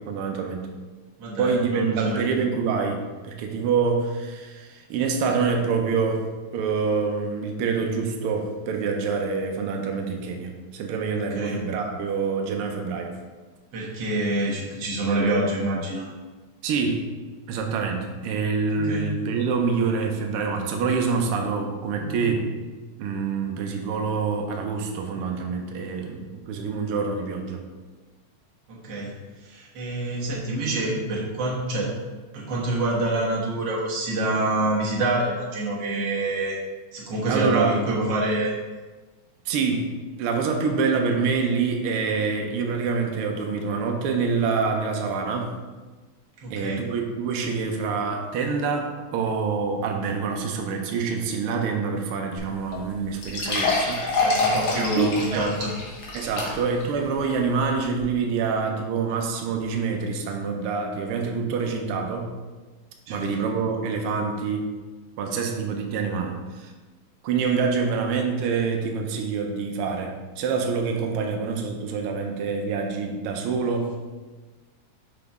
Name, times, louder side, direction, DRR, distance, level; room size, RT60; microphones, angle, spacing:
voice 1, 0.1-0.7 1.4-3.0 3.2-6.3 6.5-13.1 16.6-17.1 17.5-22.5 23.0-27.6 37.3-37.8 39.5-39.9 40.2-45.5 46.5-54.1 54.7-55.5 56.1-62.3 63.1-64.7 65.2-66.7 67.2-74.0, right 5 dB, 85° right, 3 dB, 1.2 m, -26 dB
voice 2, 1.2-2.3 11.3-11.6 13.7-16.1 18.7-19.2 22.0-22.3 28.7-29.1 29.4-32.0 32.3-36.5 36.9-38.5 42.4-42.6 46.4-46.9 54.1-55.7 56.5-56.6 63.1-63.3 71.2-71.3, right 2 dB, 60° right, -4 dB, 2.2 m, -26 dB
sound 1, 52.4-52.5 52.7-52.8 53.2-56.8 57.3-57.4 58.0-58.1, left 3 dB, 60° left, 2.1 m, -26 dB
6.0 x 5.8 x 3.6 m, 1.3 s
omnidirectional pair, 3.4 m